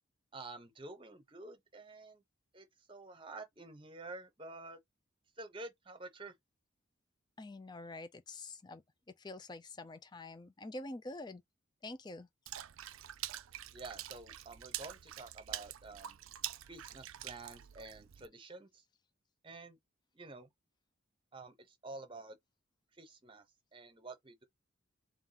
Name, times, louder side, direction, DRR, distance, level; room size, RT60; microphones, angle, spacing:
voice 1, 0.3-2.2 2.5-4.8 5.4-6.3 13.7-16.2 16.7-18.8 19.4-19.8 20.1-20.5 21.3-22.4 23.0-23.4 23.7-24.4, right 2 dB, 25° right, 0.9 m, -49 dB
voice 2, 7.4-8.8 9.2-11.4 11.8-12.3, left 2 dB, 20° left, 0.4 m, -46 dB
Water / Splash splatter, 12.5-18.3, right 13 dB, 80° right, 0.5 m, -45 dB
3.5 x 3.0 x 3.9 m
head